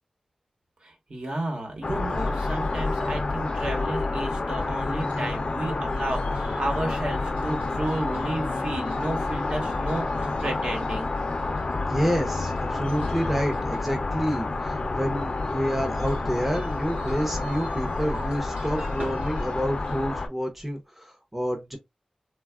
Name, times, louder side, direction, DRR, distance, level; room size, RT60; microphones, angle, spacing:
voice 1, 0.8-11.1, right 1 dB, 55° right, 1.1 m, -32 dB
sound 1, 1.8-20.3, left 3 dB, 50° left, 0.5 m, -29 dB
sound 2, 2.4-20.1, right 2 dB, 90° right, 1.1 m, -48 dB
voice 2, 11.9-21.8, equal, 5° right, 0.6 m, -28 dB
3.3 x 2.3 x 2.3 m
wide cardioid pair, 100°, 2 cm